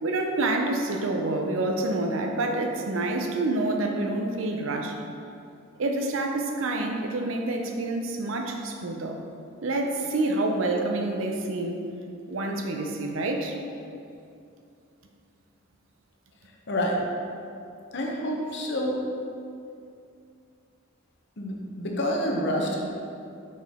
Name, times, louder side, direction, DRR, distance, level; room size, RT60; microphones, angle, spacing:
voice 1, 0.0-5.0 5.8-9.2 9.6-11.8 12.3-13.6, right 2 dB, 65° right, 3 dB, 0.6 m, -27 dB
voice 2, 16.5-17.0 17.9-19.0 21.4-22.9, equal, 50° left, -1 dB, 0.8 m, -28 dB
5.8 x 4.5 x 3.6 m, 2.5 s
head